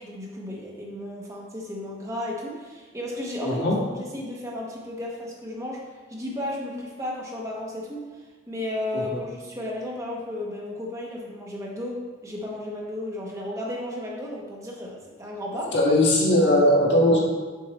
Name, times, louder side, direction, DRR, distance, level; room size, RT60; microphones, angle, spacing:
voice 1, 0.0-3.6 4.1-5.8 6.1-8.0 8.5-15.7, left 1 dB, 15° right, -3 dB, 1.1 m, -34 dB
voice 2, 3.4-3.8 8.9-9.2 15.7-17.2, left 1 dB, 75° left, -4 dB, 1.7 m, -19 dB
6.5 x 5.7 x 4.1 m, 1.4 s
head